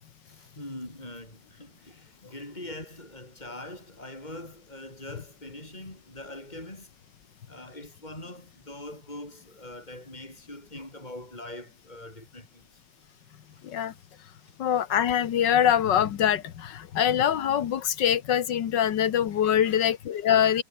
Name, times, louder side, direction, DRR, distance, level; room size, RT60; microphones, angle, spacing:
voice 1, 0.3-6.9 7.5-12.6 14.4-14.5 19.5-19.7, left 1 dB, 25° left, 7.3 m, -42 dB
voice 2, 14.6-20.6, left 9 dB, 75° left, 1.8 m, -24 dB
omnidirectional pair, 1.9 m